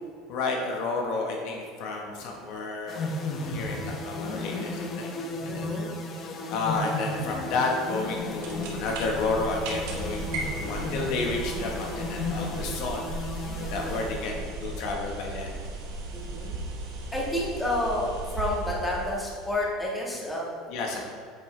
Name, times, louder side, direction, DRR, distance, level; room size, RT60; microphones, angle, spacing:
voice 1, 0.3-3.1 3.4-5.1 5.4-5.8 6.2-13.1 13.7-15.5 20.7-21.0, left 3 dB, 60° left, 1 dB, 0.9 m, -31 dB
sound 1, 2.9-14.7, left 2 dB, 35° left, 0.7 m, -34 dB
voice 2, 5.4-5.9 16.1-16.6 17.1-20.5, left 1 dB, 5° left, -4 dB, 1.5 m, -30 dB
sound 2, 8.0-19.8, right 2 dB, 75° right, 1.2 m, -36 dB
8.5 x 4.6 x 3.2 m, 2.2 s
supercardioid pair, 135°, 0 cm